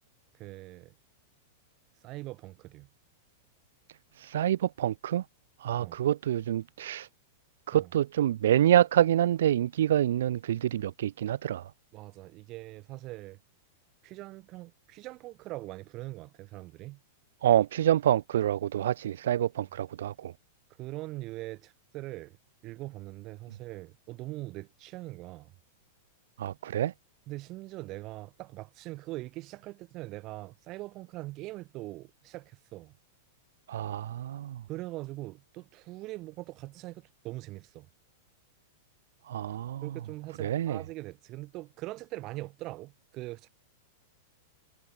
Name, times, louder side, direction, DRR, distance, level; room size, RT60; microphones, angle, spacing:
voice 1, 0.3-0.9 2.0-2.9 5.8-6.0 7.7-7.9 11.9-13.4 14.0-17.0 20.8-22.4 22.6-25.5 27.3-33.0 34.7-37.9 39.8-43.5, right 19 dB, 30° right, 7.5 m, -42 dB
voice 2, 4.2-5.2 5.6-7.1 7.7-11.7 17.4-20.3 26.4-26.9 33.7-34.6 39.3-39.9 40.4-40.8, right 11 dB, 80° right, 0.3 m, -27 dB
supercardioid pair, 160°, 0 cm